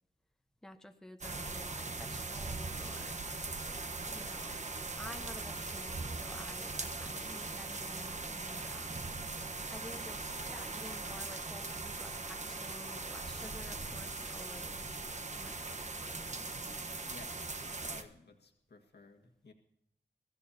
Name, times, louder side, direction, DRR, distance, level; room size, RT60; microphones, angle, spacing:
voice 1, 0.6-3.2 4.1-4.6 5.0-9.0 9.7-14.9 15.3-16.5, left 1 dB, 5° left, 6 dB, 1.0 m, -51 dB
sound 1, 1.2-18.0, right 3 dB, 40° right, 1.1 m, -40 dB
voice 2, 17.0-19.5, left 3 dB, 60° left, 2 dB, 1.8 m, -55 dB
23.0 x 14.0 x 2.8 m, 0.76 s
wide cardioid pair, 80°, 19 cm